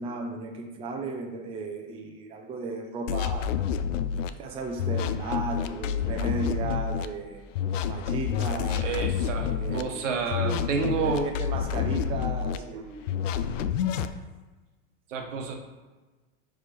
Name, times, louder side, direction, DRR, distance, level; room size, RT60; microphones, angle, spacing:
voice 1, 0.0-3.5 4.4-7.4 7.8-8.8 9.4-10.1 10.4-12.8, right 3 dB, 15° right, 2 dB, 0.5 m, -35 dB
sound 1, 3.1-4.3 4.8-7.1 7.5-9.8 10.3-12.6 13.1-14.1, left 8 dB, 80° left, 0.6 m, -28 dB
voice 2, 8.8-11.3 12.7-13.1 15.1-15.5, right 5 dB, 75° right, 3 dB, 1.2 m, -30 dB
5.0 x 4.8 x 4.4 m, 1.2 s
supercardioid pair, 135°, 37 cm